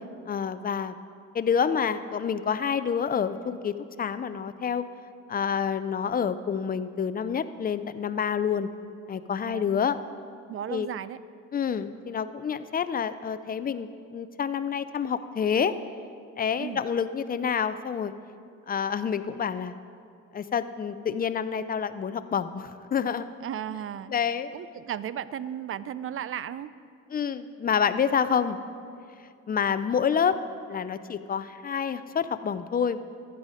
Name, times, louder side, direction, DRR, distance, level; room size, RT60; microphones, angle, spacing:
voice 1, 0.3-0.9 1.3-4.8 5.3-8.7 9.1-10.0 10.7-10.9 11.5-15.8 16.4-18.1 18.7-19.8 20.3-23.2 24.1-24.5 27.1-28.6 29.5-30.4 30.7-33.0, left 7 dB, 30° left, 12 dB, 0.5 m, -28 dB
voice 2, 10.5-11.2 16.6-16.9 23.4-24.2 24.5-26.7, right 10 dB, 45° right, 16 dB, 0.4 m, -35 dB
12.0 x 9.1 x 5.0 m, 2.4 s
cardioid pair, 90°, 30 cm